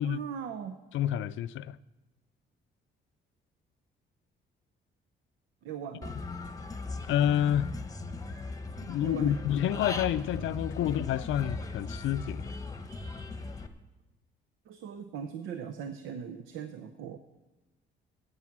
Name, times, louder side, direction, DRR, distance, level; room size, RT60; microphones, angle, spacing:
voice 1, 0.0-0.8 5.6-6.2 9.0-9.8 14.6-17.2, right 7 dB, 85° right, 0.7 m, -40 dB
voice 2, 0.9-1.8 7.1-7.7 8.8-12.5, left 11 dB, 75° left, 0.4 m, -28 dB
Human voice / Bird, 6.0-13.7, left 3 dB, 15° left, 1.0 m, -38 dB
10.5 x 8.2 x 7.3 m
cardioid pair, 90°, 20 cm